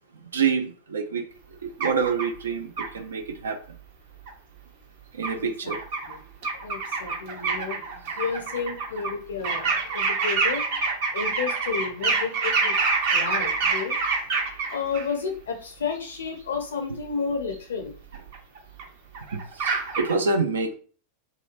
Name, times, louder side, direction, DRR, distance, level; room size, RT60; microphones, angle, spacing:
voice 1, 0.3-1.2 1.6-3.6 5.1-5.8 19.3-20.7, right 5 dB, 70° right, 6 dB, 0.4 m, -27 dB
sound 1, 1.8-2.2 2.8-2.9 4.3-4.4 5.2-5.3 5.7-6.1 6.4-9.1 9.4-15.0 17.5-17.6 18.1-18.8 19.1-20.1, right 4 dB, 50° right, 0.8 m, -26 dB
voice 2, 5.4-6.2 6.6-7.8 8.2-10.6 11.1-12.7 13.1-13.9 14.7-17.9, left 5 dB, 65° left, 3 dB, 0.5 m, -31 dB
3.0 x 2.2 x 2.5 m, 0.40 s
figure-of-eight pair, 90°, 0 cm